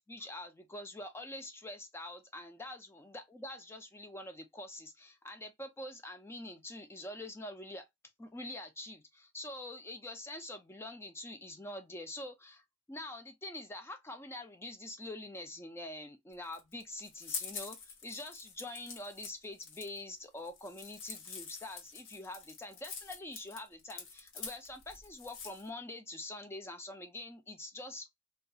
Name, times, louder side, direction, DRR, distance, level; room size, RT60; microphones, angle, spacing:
voice 1, 0.1-7.9 8.2-28.1, left 1 dB, 15° left, 0.3 m, -45 dB
old leaves, 16.3-25.7, left 5 dB, 75° left, 0.8 m, -46 dB
2.6 x 2.3 x 2.3 m
head